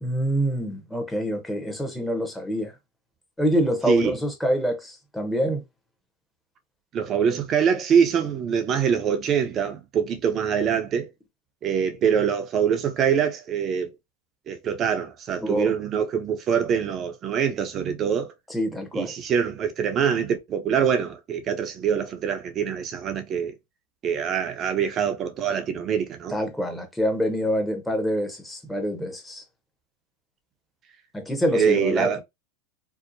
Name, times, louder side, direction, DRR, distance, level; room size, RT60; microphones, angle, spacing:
voice 1, 0.0-2.7 3.4-5.6 15.4-15.7 18.5-19.1 26.3-29.4 31.1-32.2, equal, 5° left, 0.8 m, -26 dB
voice 2, 3.9-4.2 6.9-11.1 11.6-13.9 14.5-18.3 18.9-23.5 24.0-26.4 31.5-32.2, right 7 dB, 35° right, 0.5 m, -24 dB
2.7 x 2.1 x 2.5 m
hypercardioid pair, 95°, 0 cm